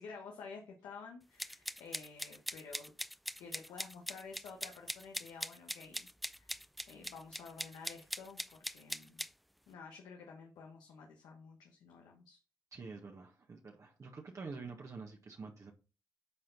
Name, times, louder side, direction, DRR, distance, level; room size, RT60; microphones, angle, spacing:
voice 1, 0.0-2.9 3.4-6.5 6.9-9.2 9.7-12.4, left 5 dB, 90° left, 1.2 m, -51 dB
sound 1, 1.4-9.3, equal, ahead, 0.3 m, -42 dB
voice 2, 12.7-15.7, right 4 dB, 50° right, 1.5 m, -47 dB
8.5 x 4.4 x 4.0 m
supercardioid pair, 60°, 7 cm